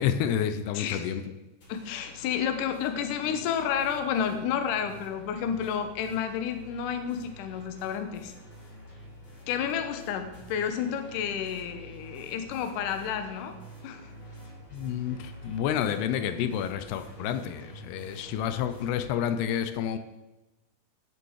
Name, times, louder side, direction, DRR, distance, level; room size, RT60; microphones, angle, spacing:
voice 1, 0.0-1.3 14.7-20.0, left 9 dB, 85° left, 9 dB, 2.8 m, -29 dB
voice 2, 0.8-1.1 1.7-8.3 9.5-13.6 13.8-14.1, left 8 dB, 70° left, 7 dB, 2.3 m, -31 dB
sound 1, 1.6-19.1, equal, 35° left, 2.6 m, -48 dB
17.0 x 7.0 x 4.8 m, 1.1 s
omnidirectional pair, 4.6 m